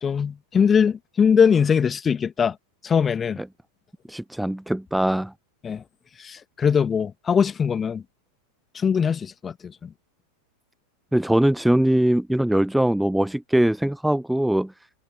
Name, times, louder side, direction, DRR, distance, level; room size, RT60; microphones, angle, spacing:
voice 1, 0.0-2.6 2.8-3.4 5.6-5.8 6.2-8.0 8.7-9.9, left 7 dB, 20° left, 1.7 m, -21 dB
voice 2, 4.1-5.3 11.1-14.7, right 1 dB, ahead, 0.4 m, -21 dB
figure-of-eight pair, 90°, 0 cm